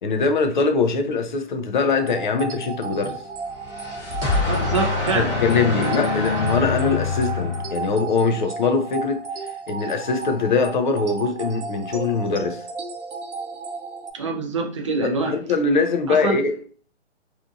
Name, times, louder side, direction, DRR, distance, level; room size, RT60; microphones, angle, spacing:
voice 1, 0.0-3.2 5.1-9.3 9.7-12.6 15.0-16.6, left 4 dB, 45° left, 0.4 m, -22 dB
sound 1, 2.0-14.1, right 5 dB, 80° right, 0.7 m, -33 dB
sound 2, 3.5-8.1, left 4 dB, 25° left, 0.8 m, -25 dB
voice 2, 4.4-5.3 5.9-6.0 14.1-15.4 16.1-16.4, right 3 dB, 30° right, 0.4 m, -25 dB
2.7 x 2.5 x 2.4 m
hypercardioid pair, 145°, 35 cm